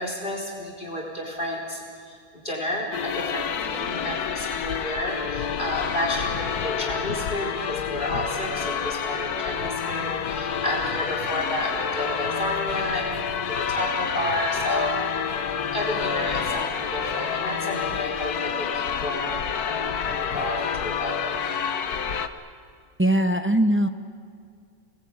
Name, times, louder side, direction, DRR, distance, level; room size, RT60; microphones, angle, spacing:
voice 1, 0.0-14.9 15.7-21.7, left 1 dB, 30° left, -1 dB, 4.2 m, -31 dB
sound 1, 2.9-22.3, left 7 dB, 75° left, 1.5 m, -28 dB
sound 2, 9.5-16.6, equal, 50° right, 6.6 m, -44 dB
voice 2, 23.0-23.9, right 1 dB, 10° right, 6 dB, 0.9 m, -20 dB
27.5 x 20.0 x 8.8 m, 2.2 s
omnidirectional pair, 1.6 m